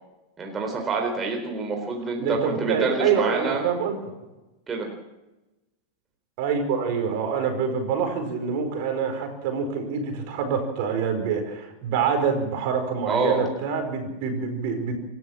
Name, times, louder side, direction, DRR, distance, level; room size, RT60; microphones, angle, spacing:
voice 1, 0.4-3.6 4.7-4.9 13.1-13.5, right 3 dB, 20° right, 1 dB, 4.1 m, -27 dB
voice 2, 2.2-4.0 6.4-15.0, right 6 dB, 45° right, 5 dB, 4.9 m, -26 dB
27.5 x 13.0 x 7.3 m, 1.0 s
figure-of-eight pair, 90°, 0 cm